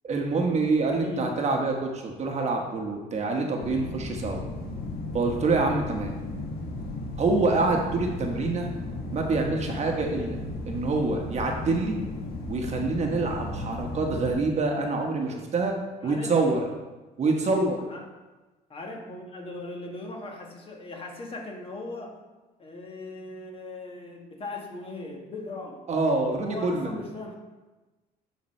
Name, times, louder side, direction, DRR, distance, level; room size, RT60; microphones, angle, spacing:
voice 1, 0.0-4.4 5.1-6.1 7.2-8.7 9.1-10.4 10.7-12.0 12.5-15.8 16.0-16.6 17.2-17.8 25.9-27.0, right 3 dB, 40° right, 2 dB, 1.2 m, -26 dB
voice 2, 1.0-1.3 16.0-16.6 17.9-18.1 18.7-22.2 22.6-25.8 26.3-27.4, left 2 dB, 35° left, 1 dB, 1.5 m, -38 dB
sound 1, 3.6-14.4, left 2 dB, 65° left, 1.3 m, -35 dB
11.0 x 3.9 x 4.3 m, 1.2 s
cardioid pair, 110°, 17 cm